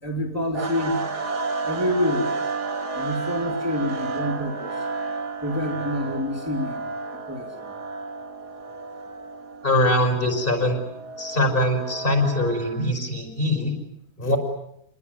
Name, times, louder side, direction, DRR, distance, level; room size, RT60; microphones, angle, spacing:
voice 1, 0.0-1.0 1.6-2.3 2.9-4.9 5.4-6.9 7.3-7.7, left 1 dB, 10° right, 0 dB, 3.0 m, -27 dB
sound 1, 0.5-12.9, right 4 dB, 70° right, 2.7 m, -32 dB
voice 2, 9.6-10.8 11.2-13.8 14.2-14.4, left 1 dB, 30° left, 5 dB, 6.0 m, -22 dB
28.5 x 21.0 x 9.6 m, 0.77 s
omnidirectional pair, 1.8 m